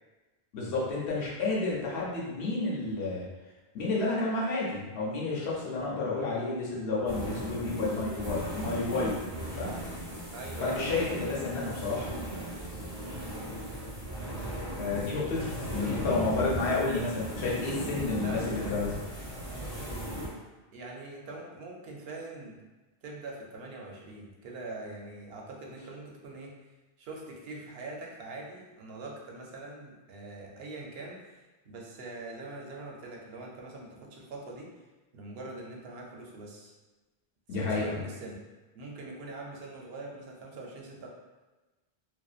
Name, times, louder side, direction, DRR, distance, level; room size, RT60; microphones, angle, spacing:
voice 1, 0.5-3.3 3.7-9.2 9.6-9.7 10.6-12.1 14.8-18.9 37.5-37.9, left 3 dB, 90° left, -5 dB, 0.9 m, -31 dB
sound 1, 7.1-20.3, right 1 dB, 20° right, 0.8 m, -36 dB
voice 2, 10.3-11.0 13.0-13.3 18.0-18.8 20.7-22.6 23.0-26.5 27.0-34.7 35.1-36.7 37.5-38.4 38.7-41.1, right 2 dB, 70° right, -1 dB, 0.8 m, -43 dB
2.6 x 2.1 x 2.3 m, 1.2 s
omnidirectional pair, 1.1 m